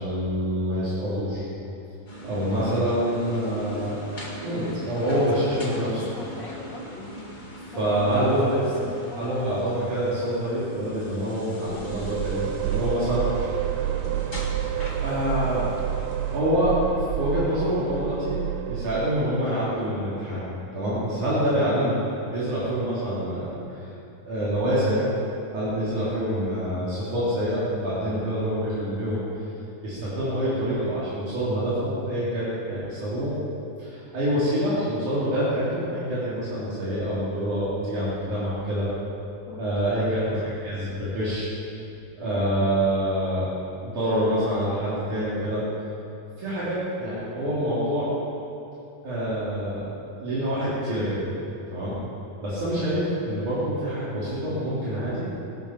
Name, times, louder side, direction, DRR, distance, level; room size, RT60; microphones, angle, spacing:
voice 1, 0.0-1.4 2.2-4.0 4.4-6.0 7.8-8.7 9.2-13.7 15.0-15.6 16.3-16.8 17.1-18.4 18.7-20.4 20.7-22.0 22.3-23.9 24.2-25.1 25.5-29.2 29.8-33.4 33.8-38.9 39.6-41.5 42.2-43.5 43.8-45.6 46.4-48.1 49.0-49.9 50.2-51.2 51.7-52.0 52.4-55.3, equal, 65° right, -10 dB, 4.5 m, -26 dB
sound 1, 2.1-16.4, equal, 20° left, 1.3 m, -40 dB
voice 2, 4.5-7.3 7.7-9.3 20.9-21.5 39.5-40.0, left 3 dB, 75° left, -1 dB, 1.0 m, -41 dB
sound 2, 11.7-19.5, right 11 dB, 90° right, 2.2 m, -29 dB
18.0 x 11.5 x 6.0 m, 2.8 s
omnidirectional pair, 3.7 m